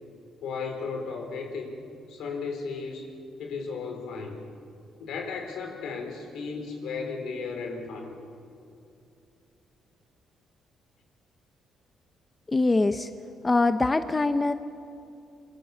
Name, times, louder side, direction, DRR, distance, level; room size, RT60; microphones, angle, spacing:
voice 1, 0.4-1.7 2.1-3.1 3.4-4.4 5.0-8.2, left 4 dB, 80° left, 4 dB, 4.4 m, -35 dB
voice 2, 12.5-13.1 13.4-14.5, left 3 dB, 20° left, 9 dB, 0.9 m, -23 dB
26.0 x 23.0 x 7.3 m, 2.6 s
cardioid pair, 90°, 0 cm